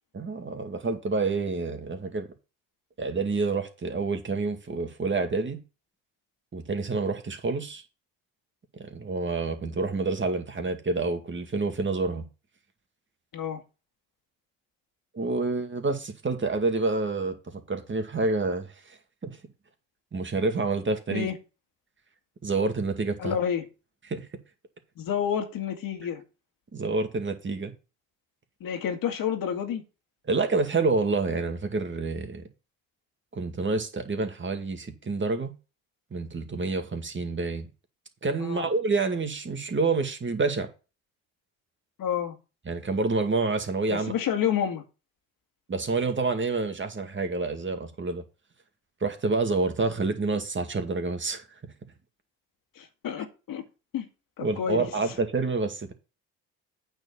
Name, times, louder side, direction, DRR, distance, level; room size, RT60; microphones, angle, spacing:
voice 1, 0.1-2.3 3.0-5.6 6.5-7.8 8.7-12.2 15.1-19.4 20.1-21.3 22.4-23.4 24.1-24.3 26.7-27.7 30.3-32.4 33.3-35.5 36.1-37.7 38.2-40.7 42.7-44.1 45.7-48.2 49.0-51.4 54.4-55.9, right 3 dB, 30° right, 2.2 m, -28 dB
voice 2, 23.2-23.7 25.0-26.2 28.6-29.8 38.4-38.7 42.0-42.4 43.9-44.8 52.8-53.6 53.9-54.1 54.4-54.9, left 8 dB, 60° left, 2.1 m, -29 dB
8.9 x 4.4 x 7.1 m
hypercardioid pair, 60°, 38 cm